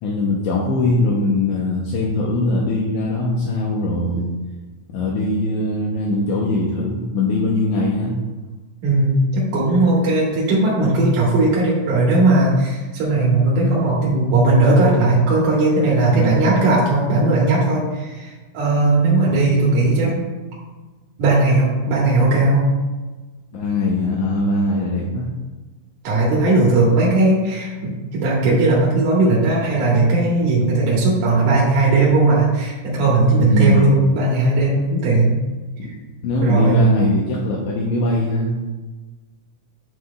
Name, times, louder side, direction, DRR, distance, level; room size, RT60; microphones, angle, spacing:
voice 1, 0.0-4.3 4.9-8.1 16.1-16.5 23.5-25.3 33.4-33.9 35.8-35.9 36.2-38.5, left 2 dB, 75° left, -3 dB, 2.1 m, -21 dB
voice 2, 8.8-20.3 21.2-22.7 26.0-35.3 36.4-36.8, right 2 dB, 75° right, -5 dB, 2.7 m, -17 dB
9.5 x 5.8 x 2.3 m, 1.2 s
omnidirectional pair, 3.7 m